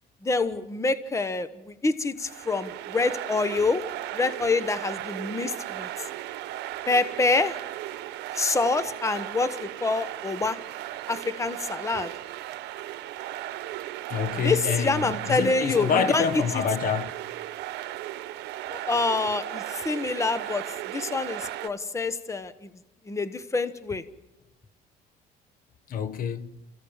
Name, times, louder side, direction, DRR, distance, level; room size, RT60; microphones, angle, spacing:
voice 1, 0.2-3.9 4.1-5.9 6.9-7.5 8.3-10.6 11.1-12.1 14.4-16.2 16.5-16.6 18.7-22.7 23.1-24.0, left 3 dB, 15° left, 1.2 m, -26 dB
sound 1, 2.2-21.7, right 14 dB, 80° right, 0.9 m, -36 dB
voice 2, 14.1-17.1 25.9-26.6, left 7 dB, 55° left, 1.3 m, -27 dB
28.5 x 15.5 x 7.3 m
cardioid pair, 110°, 17 cm